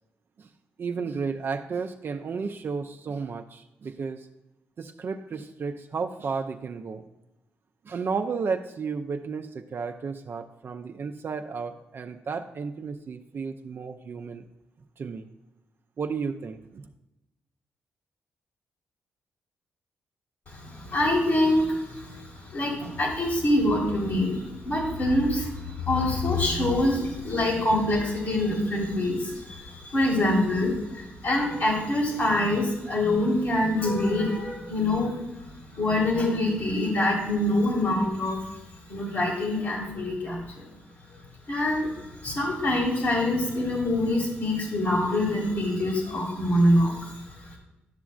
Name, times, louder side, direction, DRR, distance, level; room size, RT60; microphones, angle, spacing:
voice 1, 0.8-4.3 4.8-7.0 7.8-14.5 15.0-15.3 16.0-16.8, right 5 dB, 50° right, 6 dB, 0.5 m, -33 dB
voice 2, 20.5-38.4 38.9-40.7 41.1-41.2 41.5-47.6, left 1 dB, 60° left, -5 dB, 2.0 m, -25 dB
11.0 x 5.9 x 2.4 m, 0.95 s
supercardioid pair, 55°, 5 cm